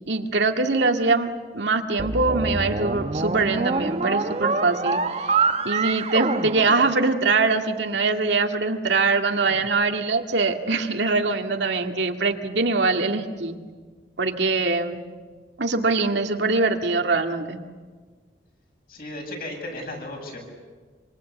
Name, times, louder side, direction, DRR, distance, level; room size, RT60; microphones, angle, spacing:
voice 1, 0.1-13.6 14.2-15.0 15.6-17.6, right 3 dB, 80° right, 4 dB, 2.1 m, -23 dB
sound 1, 2.0-7.5, right 4 dB, 35° right, 0.9 m, -26 dB
voice 2, 18.9-20.4, left 1 dB, 55° left, 1 dB, 7.8 m, -35 dB
26.5 x 25.5 x 8.4 m, 1.5 s
head